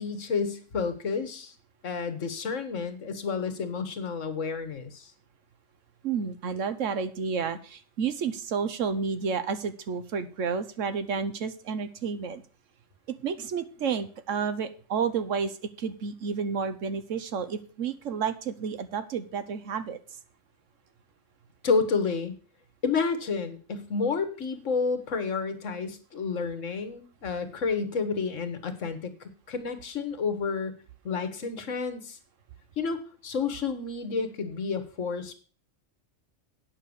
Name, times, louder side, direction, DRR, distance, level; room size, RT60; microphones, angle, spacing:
voice 1, 0.0-1.5 1.8-5.1 21.6-22.3 22.8-30.7 31.0-32.2 32.8-35.3, left 5 dB, 70° left, 10 dB, 1.6 m, -30 dB
voice 2, 6.0-12.4 13.2-20.0, right 6 dB, 75° right, 12 dB, 1.3 m, -31 dB
8.7 x 6.6 x 6.9 m, 0.40 s
omnidirectional pair, 1.3 m